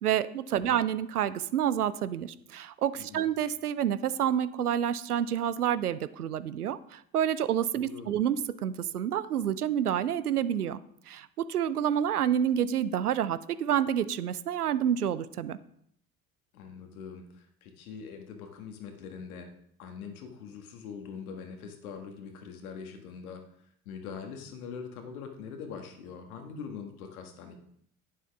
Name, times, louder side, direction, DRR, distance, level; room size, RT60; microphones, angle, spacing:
voice 1, 0.0-10.8 11.1-15.6, right 9 dB, 85° right, 16 dB, 0.6 m, -28 dB
voice 2, 2.9-3.3 7.7-8.1 16.5-19.5 19.8-23.4 23.8-27.5, left 6 dB, 75° left, 5 dB, 1.7 m, -43 dB
11.0 x 9.5 x 3.5 m, 0.68 s
figure-of-eight pair, 60°, 44 cm